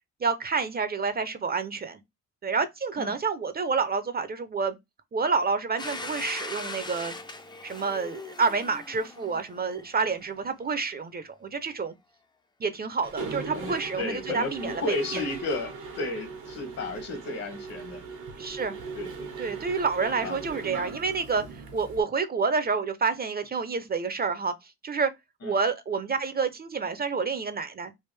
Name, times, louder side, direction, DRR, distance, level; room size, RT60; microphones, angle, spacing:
voice 1, 0.2-2.0 2.4-4.8 5.1-7.2 7.6-11.9 12.6-14.9 18.4-18.8 19.4-21.4 21.7-24.5 24.8-25.1 25.4-27.9, right 5 dB, 30° right, 0.6 m, -28 dB
Domestic sounds home sounds, 5.8-10.4, left 2 dB, 15° left, 0.5 m, -40 dB
Mechanisms, 13.0-22.0, right 4 dB, 85° right, 1.2 m, -39 dB
voice 2, 13.5-18.0 18.9-19.3 20.2-20.6 25.4-25.5, left 2 dB, 60° left, 1.4 m, -33 dB
3.4 x 2.5 x 3.3 m
cardioid pair, 90°, 30 cm